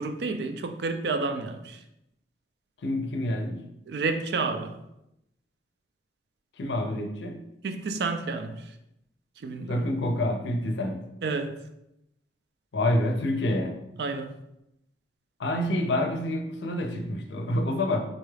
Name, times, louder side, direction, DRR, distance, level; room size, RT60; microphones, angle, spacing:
voice 1, 0.0-1.8 3.9-4.8 7.6-8.8 9.4-9.8 11.2-11.6 14.0-14.4, right 3 dB, 65° right, 0.3 m, -30 dB
voice 2, 2.8-3.6 6.5-7.5 9.7-11.1 12.7-13.8 15.4-18.0, left 1 dB, 80° left, 0.5 m, -27 dB
4.0 x 2.3 x 3.2 m
head